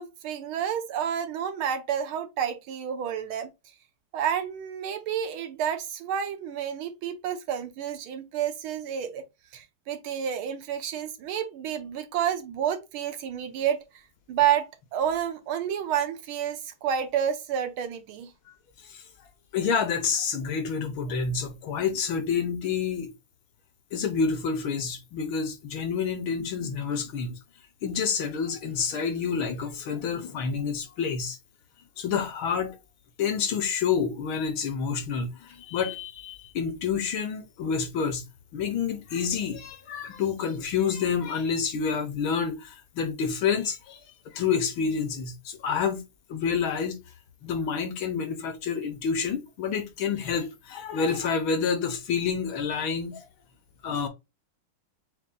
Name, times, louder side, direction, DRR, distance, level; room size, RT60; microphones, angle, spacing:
voice 1, 0.0-3.5 4.1-9.2 9.5-14.0 14.3-18.3, right 9 dB, 75° right, 1.6 m, -30 dB
voice 2, 19.5-23.1 23.9-27.3 27.8-31.4 32.0-32.8 33.2-38.2 38.5-44.0 44.4-46.0 46.3-47.0 47.4-53.2 53.8-54.1, left 6 dB, 70° left, 1.7 m, -28 dB
7.0 x 2.6 x 2.2 m
omnidirectional pair, 2.4 m